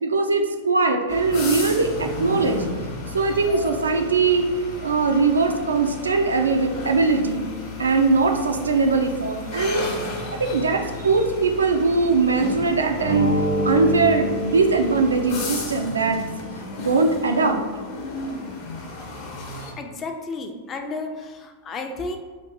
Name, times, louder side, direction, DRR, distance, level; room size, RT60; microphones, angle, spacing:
voice 1, 0.0-2.6 3.1-4.4 4.8-7.4 7.8-10.0 10.4-13.3 13.6-16.2 16.8-17.6, right 4 dB, 80° right, 5 dB, 0.3 m, -21 dB
sound 1, 1.1-19.7, left 3 dB, 45° left, 0.8 m, -34 dB
sound 2, 12.9-15.6, equal, 90° left, 0.7 m, -26 dB
voice 2, 19.8-22.2, left 3 dB, 30° left, 4 dB, 0.4 m, -32 dB
2.6 x 2.5 x 3.7 m, 1.4 s
figure-of-eight pair, 95°, 0 cm